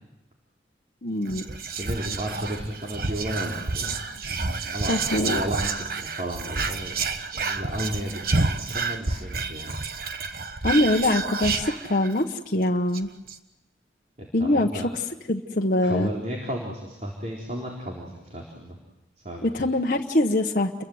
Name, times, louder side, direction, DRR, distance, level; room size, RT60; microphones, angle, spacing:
voice 1, 1.0-1.4 4.9-5.4 10.6-13.1 14.3-14.8 15.3-16.1 19.4-20.8, left 1 dB, 50° left, 1 dB, 1.2 m, -23 dB
Whispering, 1.3-12.3 12.6-12.7 12.9-13.4, right 3 dB, 55° right, 1.4 m, -29 dB
voice 2, 1.7-4.0 4.7-7.0 7.3-9.7 14.2-14.9 15.8-18.8 19.2-19.7, equal, 40° right, -1 dB, 4.0 m, -33 dB
29.5 x 22.5 x 8.1 m, 1.0 s
head